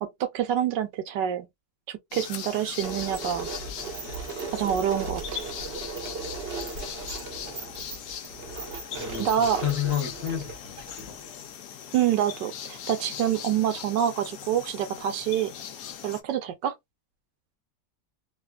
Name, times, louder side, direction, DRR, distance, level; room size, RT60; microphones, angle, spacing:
voice 1, 0.0-1.5 1.9-3.5 4.5-5.4 9.2-9.6 11.9-15.5 16.0-16.7, right 10 dB, 90° right, 1.3 m, -27 dB
sound 1, 2.1-16.2, left 9 dB, 75° left, 1.2 m, -40 dB
sound 2, 2.8-11.3, right 4 dB, 55° right, 0.7 m, -37 dB
voice 2, 9.0-11.2, left 10 dB, 55° left, 1.2 m, -31 dB
3.2 x 2.3 x 2.2 m
omnidirectional pair, 1.9 m